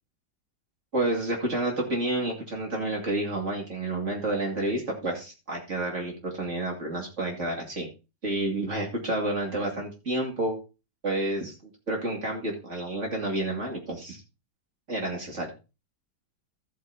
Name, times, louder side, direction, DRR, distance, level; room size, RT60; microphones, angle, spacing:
voice 1, 0.9-7.9 8.2-10.6 11.0-11.5 11.9-14.2 14.9-15.5, right 2 dB, 45° right, -1 dB, 2.8 m, -29 dB
14.0 x 8.2 x 2.8 m, 0.29 s
omnidirectional pair, 1.9 m